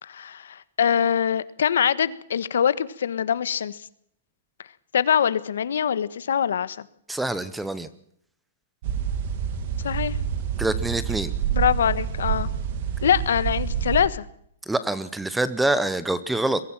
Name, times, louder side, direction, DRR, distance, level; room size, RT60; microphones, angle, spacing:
voice 1, 0.0-3.8 4.9-6.8 9.8-10.2 11.5-12.5 13.0-14.2, left 8 dB, 70° left, 16 dB, 1.4 m, -23 dB
voice 2, 7.1-7.9 10.6-11.3 14.7-16.6, right 2 dB, 5° right, 15 dB, 0.8 m, -25 dB
sound 1, 8.8-14.1, right 8 dB, 40° right, 2.3 m, -27 dB
22.5 x 15.5 x 7.5 m, 0.70 s
hypercardioid pair, 175°, 0 cm